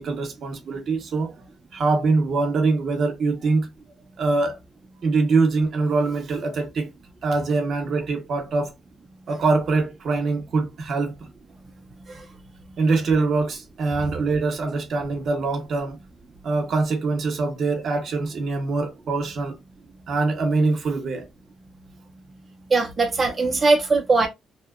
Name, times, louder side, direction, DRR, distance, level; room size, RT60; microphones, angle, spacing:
voice 1, 0.0-1.3 1.7-3.7 4.2-4.6 5.0-6.9 7.2-8.7 9.3-11.1 12.8-16.0 16.4-19.6 20.1-21.2, right 3 dB, 60° right, 0.8 m, -23 dB
voice 2, 22.7-24.3, right 3 dB, 30° right, 0.5 m, -20 dB
2.7 x 2.1 x 2.3 m
cardioid pair, 90°, 0 cm